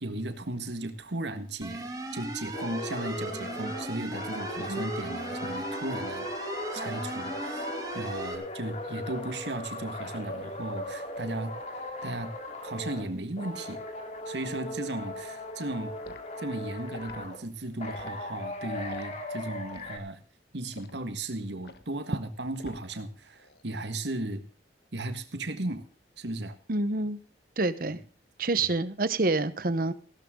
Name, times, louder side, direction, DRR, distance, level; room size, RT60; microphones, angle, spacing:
voice 1, 0.0-6.3 6.7-12.3 12.6-13.8 14.3-16.0 16.4-20.2 20.5-24.4 24.9-25.8 26.2-26.6 27.9-28.0 28.6-28.7, right 2 dB, 75° right, 9 dB, 1.6 m, -36 dB
sound 1, 1.6-8.3, right 1 dB, 20° right, 2.7 m, -37 dB
sound 2, 2.5-13.1 13.4-17.4 17.8-20.0, left 1 dB, 40° left, 2.7 m, -38 dB
Liquid, 16.0-16.3 16.9-17.2 17.8-18.1 18.8-19.1 19.7-20.0 20.7-21.0 21.6-21.9 22.6-23.0 23.4-23.6, left 3 dB, 60° left, 1.3 m, -47 dB
voice 2, 26.7-27.2 27.6-28.0 28.4-29.9, right 2 dB, 50° right, 15 dB, 0.9 m, -27 dB
15.5 x 12.5 x 3.7 m, 0.40 s
head